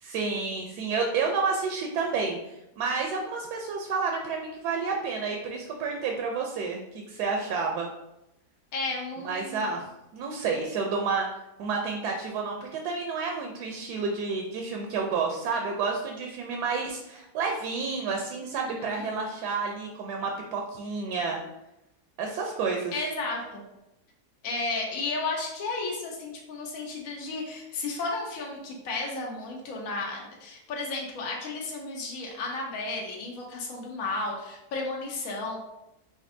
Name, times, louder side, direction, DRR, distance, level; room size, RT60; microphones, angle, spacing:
voice 1, 0.0-2.4 2.8-7.9 9.2-9.8 10.1-11.3 11.6-21.4 22.2-22.9, right 4 dB, 80° right, 2 dB, 1.2 m, -30 dB
voice 2, 8.7-9.7 18.5-19.1 22.9-23.6 24.4-35.6, left 3 dB, 65° left, -2 dB, 1.2 m, -33 dB
5.1 x 3.8 x 2.6 m, 0.90 s
omnidirectional pair, 1.7 m